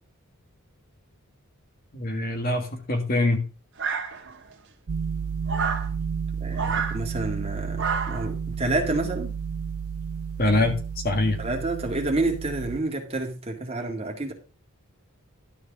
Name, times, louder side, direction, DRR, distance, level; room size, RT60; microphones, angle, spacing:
voice 1, 1.9-3.4 10.4-10.8 11.0-11.4, left 2 dB, 40° left, 1.7 m, -23 dB
sound 1, 3.8-4.5 5.5-5.9 6.5-7.0 7.8-8.3, right 5 dB, 55° right, 1.6 m, -29 dB
sound 2, 4.9-12.8, right 6 dB, 70° right, 0.5 m, -32 dB
voice 2, 6.4-9.3 11.4-14.3, right 2 dB, 25° right, 2.1 m, -29 dB
12.0 x 4.8 x 5.9 m
head